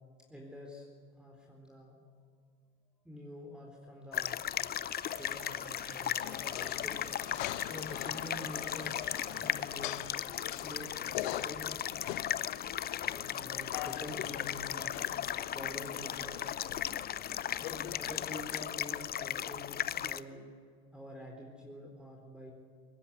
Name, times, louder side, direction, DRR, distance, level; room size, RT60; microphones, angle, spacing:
voice 1, 0.3-0.9 1.2-2.0 3.0-4.4 5.2-7.0 7.7-9.1 9.4-9.9 10.6-11.8 13.1-15.0 15.5-16.4 17.6-20.5 20.9-22.5, equal, 5° right, 0 dB, 4.1 m, -47 dB
sound 1, 4.1-20.2, left 10 dB, 25° left, 0.7 m, -37 dB
Stream, 4.8-10.9, right 4 dB, 80° right, 4.4 m, -55 dB
sound 2, 6.2-18.6, left 15 dB, 60° left, 1.0 m, -43 dB
22.0 x 19.0 x 8.2 m, 2.1 s
figure-of-eight pair, 70°, 36 cm